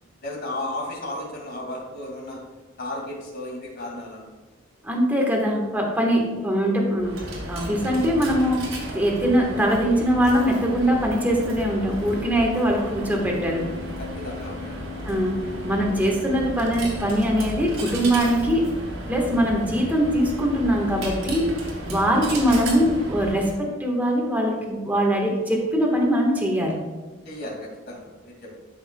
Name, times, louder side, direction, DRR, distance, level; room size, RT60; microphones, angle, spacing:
voice 1, 0.2-2.4 2.8-4.2 14.0-14.9 22.0-22.3 27.2-28.6, left 1 dB, 50° left, -1 dB, 2.2 m, -34 dB
voice 2, 4.8-7.2 7.5-13.7 15.0-18.8 19.1-21.5 21.8-26.8, equal, 10° right, -1 dB, 1.3 m, -22 dB
Coin (dropping), 7.0-23.6, equal, 80° right, 2.2 m, -34 dB
12.0 x 5.7 x 2.2 m, 1.3 s
head